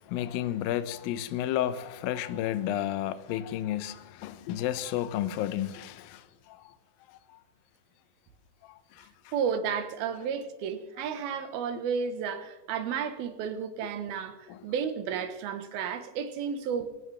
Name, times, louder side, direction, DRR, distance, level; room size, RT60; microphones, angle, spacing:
voice 1, 0.1-6.2, left 12 dB, 80° left, 2.4 m, -31 dB
voice 2, 9.3-16.9, right 7 dB, 80° right, 3.0 m, -32 dB
19.0 x 16.0 x 3.4 m
omnidirectional pair, 4.3 m